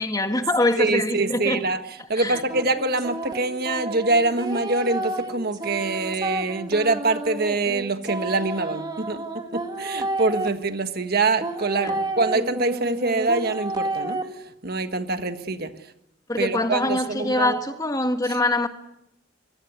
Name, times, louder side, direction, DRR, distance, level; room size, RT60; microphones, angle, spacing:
voice 1, 0.0-1.6 2.2-2.4 11.8-12.0 16.3-18.7, left 2 dB, 20° left, 1.6 m, -24 dB
voice 2, 0.8-14.2 14.6-15.7 16.4-17.6 18.3-18.4, right 3 dB, 50° right, 1.5 m, -25 dB
sound 1, 2.3-10.5 11.4-14.2, right 2 dB, 20° right, 2.3 m, -31 dB
25.5 x 22.5 x 8.3 m
head